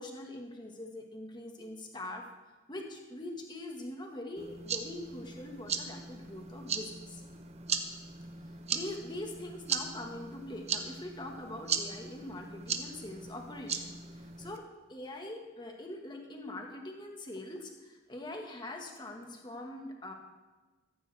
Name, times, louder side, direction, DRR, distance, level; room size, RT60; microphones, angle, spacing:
voice 1, 0.0-2.2 2.7-7.2 8.5-14.6 14.9-20.1, left 1 dB, 20° left, 1 dB, 1.8 m, -43 dB
sound 1, 4.4-14.6, right 6 dB, 35° right, 0.9 m, -38 dB
15.0 x 15.0 x 3.5 m, 1.2 s
head